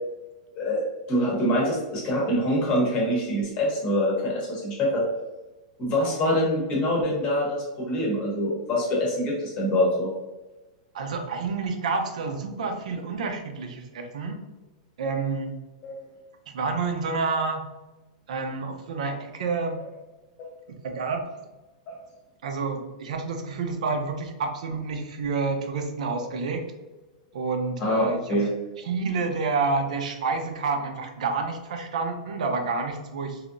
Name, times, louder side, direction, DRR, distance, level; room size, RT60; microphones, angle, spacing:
voice 1, 0.5-5.0 5.8-10.1 15.8-16.0 21.9-22.0 26.2-26.3 27.8-28.5, equal, 25° left, -2 dB, 0.9 m, -25 dB
voice 2, 10.9-14.4 15.0-15.5 16.5-17.6 18.3-19.8 20.8-21.3 22.4-26.7 27.3-28.4 28.8-33.4, right 4 dB, 75° right, 5 dB, 0.6 m, -29 dB
3.2 x 2.7 x 2.5 m, 1.1 s
supercardioid pair, 180°, 4 cm